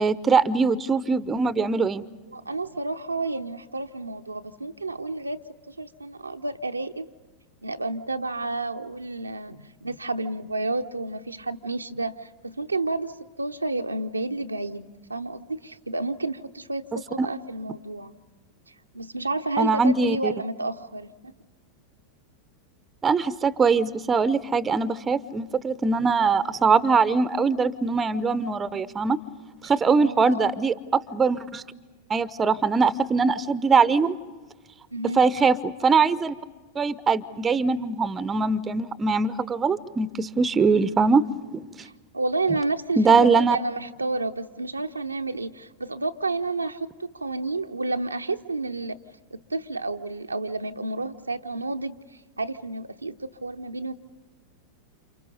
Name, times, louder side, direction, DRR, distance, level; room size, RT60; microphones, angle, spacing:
voice 1, 0.0-2.0 16.9-17.3 19.6-20.3 23.0-29.2 29.6-31.6 32.1-34.2 35.0-36.3 36.7-41.3 41.5-41.6 43.0-43.6, right 4 dB, 20° right, 17 dB, 0.8 m, -22 dB
voice 2, 2.3-5.4 5.7-7.1 7.6-18.1 18.9-21.3 29.9-30.5 34.9-35.2 41.8-49.0 49.3-52.0 52.4-53.9, right 2 dB, 80° right, 6 dB, 0.8 m, -30 dB
29.5 x 28.0 x 5.4 m, 1.3 s
figure-of-eight pair, 90°, 0 cm